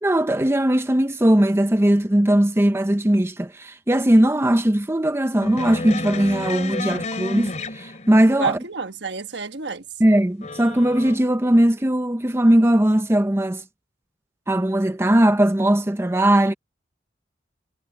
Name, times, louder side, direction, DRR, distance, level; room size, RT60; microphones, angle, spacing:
voice 1, 0.0-8.6 10.0-13.6 14.5-16.5, right 1 dB, 15° right, 0.7 m, -19 dB
sound 1, 5.4-8.4 10.4-11.2, left 2 dB, 40° left, 3.0 m, -31 dB
voice 2, 8.4-9.8, right 5 dB, 65° right, 1.3 m, -28 dB
head